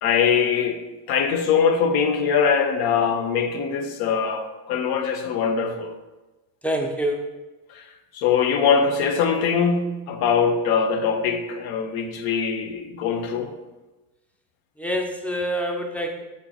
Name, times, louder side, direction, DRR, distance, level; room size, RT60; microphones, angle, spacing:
voice 1, 0.0-0.8 1.1-5.9 7.7-7.8 8.1-13.5, left 6 dB, 70° left, 0.6 m, -22 dB
voice 2, 6.6-7.3 14.8-16.2, equal, 5° left, 0.4 m, -26 dB
5.0 x 2.2 x 3.9 m
cardioid pair, 95°, 39 cm